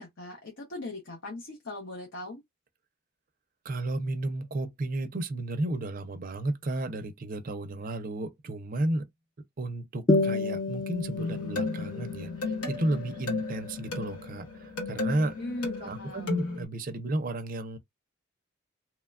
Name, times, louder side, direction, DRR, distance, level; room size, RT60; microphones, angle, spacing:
voice 1, 0.0-2.4 15.4-16.5, left 2 dB, 60° left, 0.7 m, -39 dB
voice 2, 3.6-9.1 9.6-15.3 15.8-17.8, right 2 dB, 40° right, 0.4 m, -33 dB
sound 1, 10.1-15.1, left 2 dB, 20° left, 0.3 m, -31 dB
sound 2, 11.2-16.6, left 3 dB, 90° left, 1.5 m, -34 dB
3.0 x 2.1 x 2.3 m
head